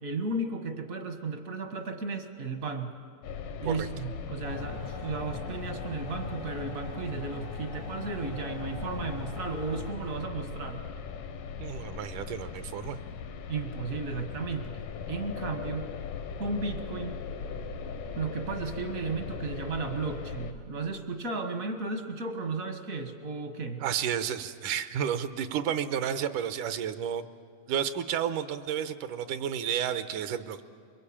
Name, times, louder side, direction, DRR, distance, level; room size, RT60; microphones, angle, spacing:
voice 1, 0.0-2.9 3.6-10.8 13.5-14.8 15.1-15.9 16.4-17.2 18.2-23.8, right 3 dB, 55° right, 6 dB, 0.9 m, -34 dB
sound 1, 3.2-20.5, left 6 dB, 85° left, 2.7 m, -39 dB
sound 2, 4.4-9.9, left 3 dB, 65° left, 0.5 m, -42 dB
voice 2, 11.6-13.0 23.8-27.2 27.7-30.6, right 9 dB, 80° right, 11 dB, 2.4 m, -31 dB
25.5 x 22.5 x 8.7 m, 2.4 s
omnidirectional pair, 3.6 m